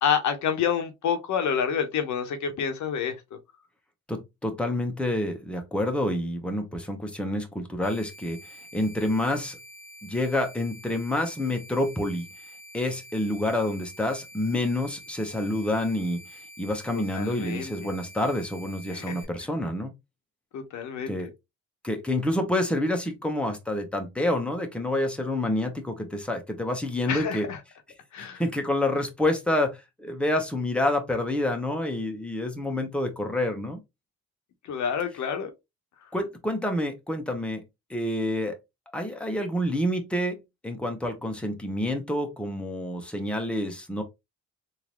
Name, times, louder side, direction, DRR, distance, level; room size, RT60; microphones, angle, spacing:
voice 1, 0.0-3.4 16.9-17.9 18.9-19.2 20.5-21.3 27.1-27.6 28.1-28.4 34.7-35.5, left 7 dB, 70° left, 0.9 m, -28 dB
voice 2, 4.1-8.4 8.7-9.6 10.0-12.3 12.7-19.9 21.1-21.3 21.8-27.5 28.2-33.8 36.1-37.6 37.9-38.6 38.9-40.4 40.6-44.0, left 1 dB, 5° left, 1.0 m, -28 dB
sound 1, 7.8-19.2, equal, 65° right, 1.5 m, -47 dB
3.7 x 2.7 x 3.0 m
cardioid pair, 90°, 30 cm